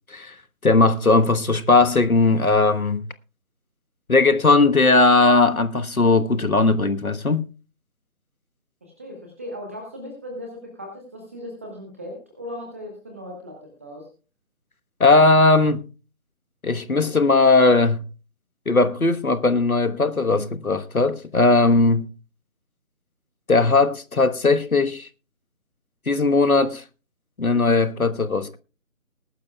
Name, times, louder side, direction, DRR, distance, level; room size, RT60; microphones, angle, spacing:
voice 1, 0.6-3.1 4.1-7.5 15.0-15.8 16.6-18.0 18.7-22.1 23.5-25.1 26.1-26.8 27.4-28.6, left 3 dB, 85° left, 1.3 m, -18 dB
voice 2, 8.8-14.1, left 1 dB, 10° right, 1.1 m, -37 dB
20.0 x 12.0 x 2.3 m
figure-of-eight pair, 155°, 42 cm